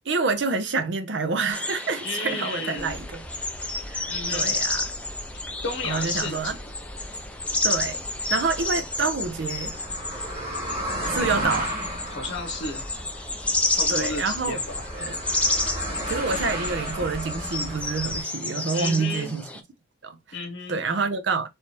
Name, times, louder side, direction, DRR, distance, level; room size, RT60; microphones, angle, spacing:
voice 1, 0.1-3.2 3.9-4.9 5.8-6.5 7.6-8.0 8.3-9.7 11.0-11.7 13.9-14.6 14.9-15.2 16.1-19.4 20.0-20.2 20.7-21.5, right 4 dB, 70° right, 0.6 m, -27 dB
sound 1, 1.5-19.6, left 2 dB, 5° left, 0.4 m, -31 dB
voice 2, 2.0-2.9 4.1-4.6 5.6-6.6 12.1-12.8 13.7-14.8 18.7-19.4 20.3-20.8, left 3 dB, 75° left, 0.8 m, -33 dB
sound 2, 2.8-18.2, equal, 35° right, 2.2 m, -35 dB
3.2 x 3.0 x 2.8 m
head